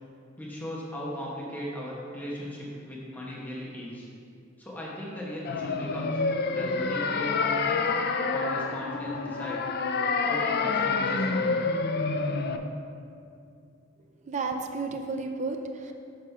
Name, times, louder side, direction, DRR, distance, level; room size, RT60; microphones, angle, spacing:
voice 1, 0.4-4.1 4.6-6.2 6.5-7.9 8.3-9.6 10.2-11.6, equal, 10° left, -5 dB, 1.1 m, -37 dB
sound 1, 5.5-12.6, left 4 dB, 55° left, 0.4 m, -28 dB
voice 2, 14.3-15.9, right 4 dB, 40° right, 4 dB, 0.4 m, -32 dB
6.6 x 4.9 x 5.6 m, 2.5 s
head